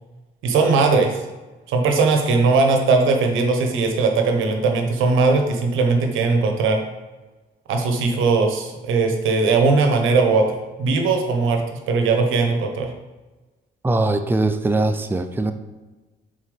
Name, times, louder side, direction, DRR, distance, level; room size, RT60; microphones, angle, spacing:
voice 1, 0.4-1.2 1.7-6.8 7.7-10.5 10.8-12.9, right 4 dB, 85° right, 4 dB, 1.1 m, -19 dB
voice 2, 13.8-15.5, right 2 dB, 10° right, 8 dB, 0.5 m, -21 dB
7.3 x 4.2 x 5.1 m, 1.2 s
cardioid pair, 90°, 20 cm